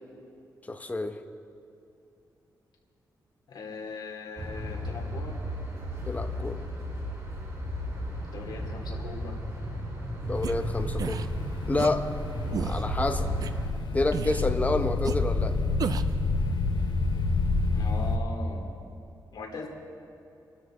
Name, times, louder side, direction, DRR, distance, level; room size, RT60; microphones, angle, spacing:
voice 1, 0.7-1.2 6.0-6.6 10.2-11.3 11.7-12.1 12.6-13.3 13.9-15.5, left 2 dB, 20° left, 7 dB, 1.0 m, -29 dB
voice 2, 3.5-5.4 8.2-9.4 17.7-18.6 19.3-19.7, left 4 dB, 70° left, 0 dB, 2.7 m, -40 dB
sound 1, 4.4-13.7, equal, 40° right, 4.1 m, -34 dB
sound 2, 10.3-18.2, left 3 dB, 90° left, 1.2 m, -29 dB
sound 3, 10.4-10.5 11.0-11.3 11.8-11.9 12.5-12.8 13.4-13.5 14.1-14.5 15.0-15.1 15.8-16.2, right 6 dB, 55° right, 0.5 m, -32 dB
26.0 x 12.5 x 3.8 m, 2.8 s
cardioid pair, 110°, 7 cm